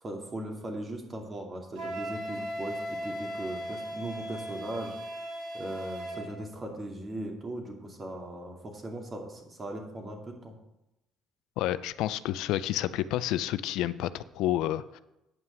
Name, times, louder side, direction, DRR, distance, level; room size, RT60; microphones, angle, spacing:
voice 1, 0.0-4.9 5.5-10.5, right 1 dB, 30° right, 3 dB, 2.3 m, -39 dB
Wind instrument woodwind instrument, 1.7-6.3, equal, 75° right, 2.8 m, -37 dB
voice 2, 11.6-15.0, left 13 dB, 80° left, 15 dB, 0.4 m, -30 dB
9.4 x 5.7 x 7.0 m, 0.91 s
cardioid pair, 90°, 0 cm